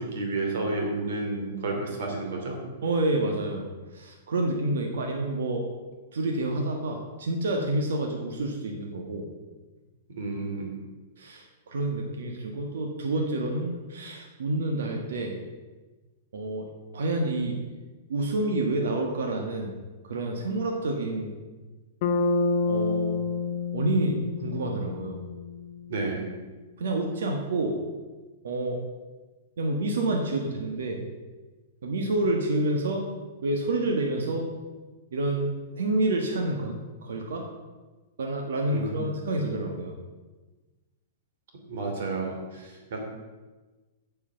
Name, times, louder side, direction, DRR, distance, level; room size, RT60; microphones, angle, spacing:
voice 1, 0.0-2.6 10.2-10.7 25.9-26.3 38.7-39.2 41.7-43.0, right 3 dB, 65° right, 1 dB, 3.0 m, -31 dB
voice 2, 2.8-3.7 3.9-5.7 6.1-9.3 11.2-15.4 16.3-17.6 18.1-19.7 20.0-21.3 22.7-23.2 23.7-25.2 26.8-27.8 28.4-28.8 29.6-31.0 31.8-33.1 33.4-34.5 35.1-37.4 38.2-39.9, right 2 dB, 85° right, 1 dB, 1.6 m, -28 dB
Bass guitar, 22.0-26.1, left 4 dB, 45° left, 1.0 m, -28 dB
7.9 x 6.8 x 6.9 m, 1.3 s
hypercardioid pair, 160°, 0 cm